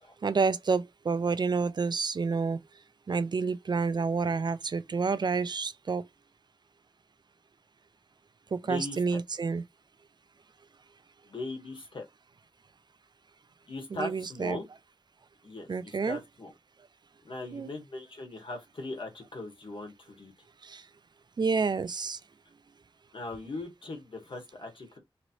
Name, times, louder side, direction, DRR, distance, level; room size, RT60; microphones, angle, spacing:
voice 1, 0.2-2.6 3.1-6.0 8.5-9.6 13.9-14.6 15.7-16.2 17.5-17.7 20.6-20.9 21.4-22.2, right 4 dB, 50° right, 0.3 m, -29 dB
voice 2, 8.6-9.0 11.2-12.0 13.7-14.7 15.4-16.5 17.2-20.3 23.1-25.0, left 2 dB, 65° left, 1.4 m, -39 dB
3.0 x 3.0 x 2.6 m
wide cardioid pair, 95°, 9 cm